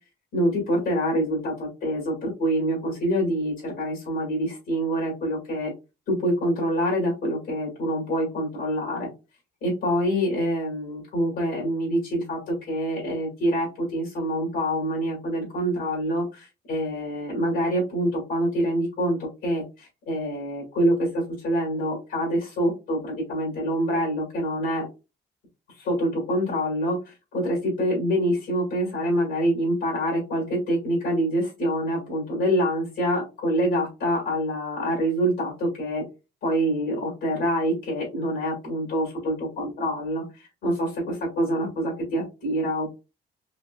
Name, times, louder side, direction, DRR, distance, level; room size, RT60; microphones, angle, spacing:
voice 1, 0.3-5.7 6.1-9.1 9.6-24.9 25.8-36.0 36.4-42.9, equal, 85° left, -2 dB, 2.0 m, -26 dB
4.2 x 2.9 x 2.3 m, 0.28 s
cardioid pair, 90°, 20 cm